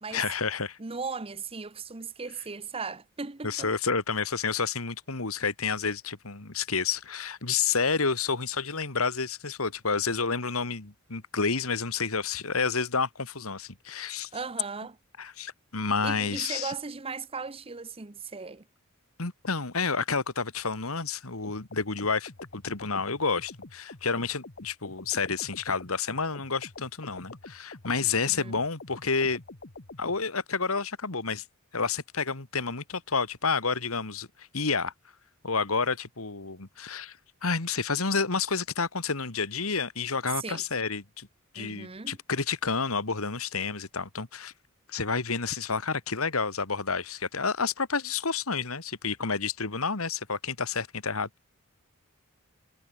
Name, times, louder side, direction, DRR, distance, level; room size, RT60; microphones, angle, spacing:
voice 1, 0.1-0.8 3.4-14.3 15.2-16.7 19.2-29.4 30.0-31.4 31.7-34.9 35.4-37.2 37.4-41.3 41.5-44.5 44.9-51.3, left 5 dB, 80° left, 2.2 m, -30 dB
voice 2, 0.8-3.7 14.3-15.0 16.0-18.6 28.2-28.5 40.4-40.6 41.5-42.2, right 4 dB, 25° right, 0.9 m, -37 dB
sound 1, 21.4-30.2, left 2 dB, 50° left, 1.7 m, -46 dB
head